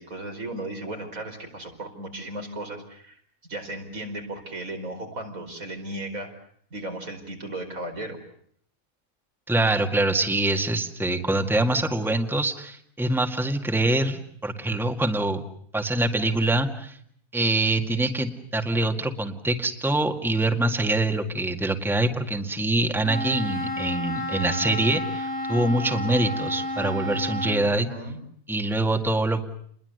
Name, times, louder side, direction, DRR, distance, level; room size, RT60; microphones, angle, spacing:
voice 1, 0.0-3.2 3.5-6.3 6.7-8.2 27.6-28.2, right 1 dB, 80° right, 3 dB, 5.3 m, -35 dB
voice 2, 9.5-15.4 15.7-17.0 17.3-27.9 28.5-29.4, right 2 dB, ahead, 5 dB, 1.9 m, -24 dB
Wind instrument woodwind instrument, 23.0-27.6, left 1 dB, 65° left, 4.9 m, -30 dB
29.5 x 21.5 x 8.0 m, 0.65 s
omnidirectional pair, 1.4 m